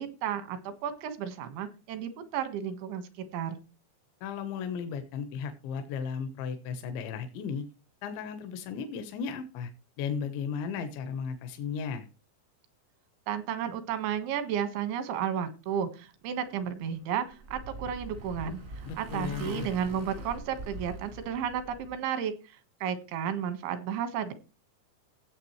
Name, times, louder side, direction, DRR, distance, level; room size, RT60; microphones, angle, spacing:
voice 1, 0.0-3.6 13.3-24.3, right 8 dB, 90° right, 9 dB, 3.9 m, -33 dB
voice 2, 4.2-7.7 8.0-9.7 10.0-12.1 18.9-19.7, left 6 dB, 80° left, 8 dB, 3.4 m, -35 dB
Motorcycle, 16.9-21.9, right 2 dB, 65° right, 0.7 m, -42 dB
16.5 x 7.8 x 3.1 m, 0.32 s
omnidirectional pair, 5.2 m